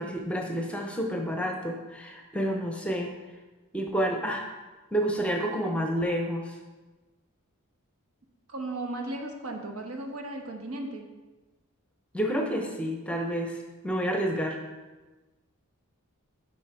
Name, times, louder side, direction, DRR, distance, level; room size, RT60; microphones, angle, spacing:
voice 1, 0.0-3.1 3.7-4.5 4.9-6.6 12.1-13.6 13.8-14.6, equal, 5° left, 2 dB, 0.8 m, -29 dB
voice 2, 8.5-11.1, right 2 dB, 70° right, 3 dB, 1.2 m, -36 dB
9.7 x 5.1 x 4.4 m, 1.2 s
head